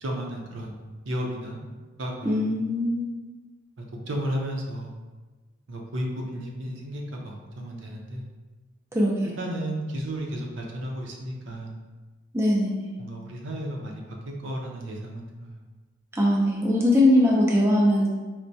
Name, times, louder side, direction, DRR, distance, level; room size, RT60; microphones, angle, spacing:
voice 1, 0.0-0.8 1.1-1.6 2.0-2.4 3.8-4.9 5.7-8.2 9.2-11.8 13.0-14.0 14.4-15.5, equal, 65° right, 0 dB, 0.5 m, -33 dB
voice 2, 2.2-3.1 8.9-9.3 12.3-12.9 16.1-18.1, left 1 dB, 15° right, -3 dB, 0.4 m, -21 dB
4.3 x 2.1 x 2.6 m, 1.3 s
head